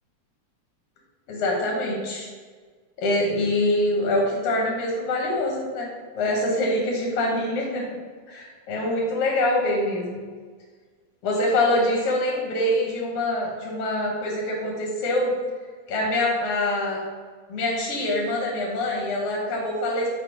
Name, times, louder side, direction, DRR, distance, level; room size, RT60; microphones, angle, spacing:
voice 1, 1.3-2.3 3.0-5.9 6.1-7.8 8.3-10.2 11.2-15.3 15.9-17.1 17.5-20.1, left 1 dB, 75° left, -2 dB, 1.2 m, -24 dB
5.3 x 2.1 x 4.8 m, 1.5 s
omnidirectional pair, 3.5 m